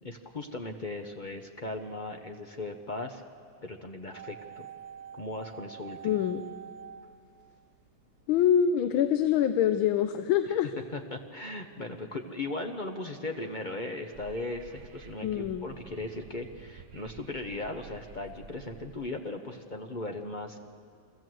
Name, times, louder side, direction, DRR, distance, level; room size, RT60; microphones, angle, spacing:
voice 1, 0.0-3.2 3.6-4.7 5.1-6.2 10.9-20.7, left 2 dB, 45° left, 4 dB, 0.6 m, -38 dB
sound 1, 4.1-8.2 8.5-8.6, right 8 dB, 80° right, 2.0 m, -46 dB
voice 2, 6.0-6.4 8.3-10.7 15.2-15.7, left 9 dB, 85° left, 9 dB, 1.5 m, -25 dB
Wind / Subway metro underground, 14.1-19.1, right 6 dB, 60° right, 0.8 m, -51 dB
24.0 x 15.5 x 7.7 m, 2.3 s
omnidirectional pair, 2.2 m